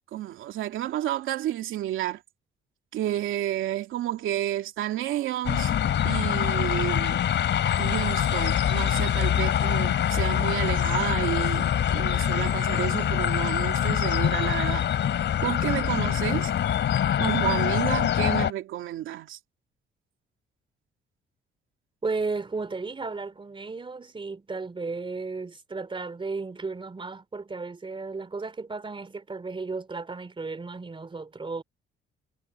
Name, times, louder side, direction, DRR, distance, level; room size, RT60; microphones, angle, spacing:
voice 1, 0.1-2.2 2.9-5.7 6.0-7.2 7.8-14.9 15.4-16.5 17.2-19.4, right 13 dB, 85° right, 2.9 m, -30 dB
sound 1, 5.4-18.5, left 10 dB, 65° left, 4.1 m, -24 dB
voice 2, 22.0-31.6, right 4 dB, 25° right, 3.1 m, -34 dB
cardioid pair, 90°, 20 cm